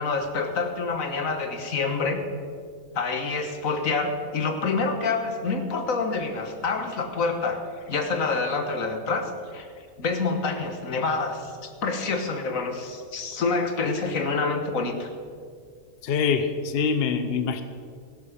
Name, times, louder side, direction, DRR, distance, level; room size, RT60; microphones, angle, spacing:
voice 1, 0.0-2.2 2.9-9.7 10.0-15.1, left 4 dB, 80° left, 6 dB, 1.7 m, -27 dB
voice 2, 16.0-17.6, left 6 dB, 50° left, 9 dB, 1.0 m, -24 dB
17.0 x 11.0 x 5.1 m, 2.1 s
omnidirectional pair, 1.4 m